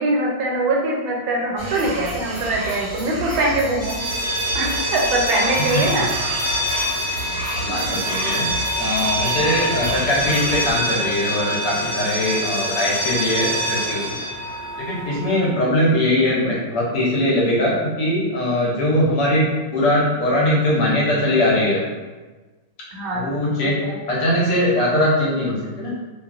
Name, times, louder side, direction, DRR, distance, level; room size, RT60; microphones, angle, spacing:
voice 1, 0.0-3.9 4.5-6.1 7.7-7.8 22.9-23.2 23.6-23.9, right 2 dB, 85° right, -1 dB, 1.4 m, -22 dB
sound 1, 1.6-10.7, right 1 dB, 70° right, 1.1 m, -32 dB
sound 2, 3.8-15.4, right 1 dB, 10° left, 0.7 m, -25 dB
voice 2, 7.5-8.5 8.8-14.2 14.8-21.8 23.1-23.8 24.1-25.9, left 1 dB, 70° left, -5 dB, 1.1 m, -21 dB
2.9 x 2.4 x 2.3 m, 1.2 s
omnidirectional pair, 2.1 m